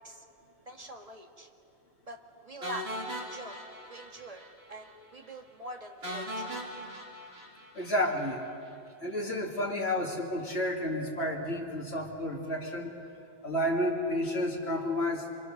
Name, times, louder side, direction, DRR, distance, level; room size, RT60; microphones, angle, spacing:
voice 1, 0.7-1.5 2.1-2.2 2.4-3.6 3.9-6.5, right 1 dB, 35° right, 2 dB, 1.9 m, -44 dB
sound 1, 2.6-4.5 4.8-4.9 5.2-5.3 6.0-8.3, equal, 70° right, 3.7 m, -39 dB
voice 2, 7.7-8.4 9.0-12.9 13.4-15.3, left 1 dB, 80° left, -2 dB, 2.8 m, -31 dB
26.5 x 25.5 x 6.5 m, 2.5 s
omnidirectional pair, 1.1 m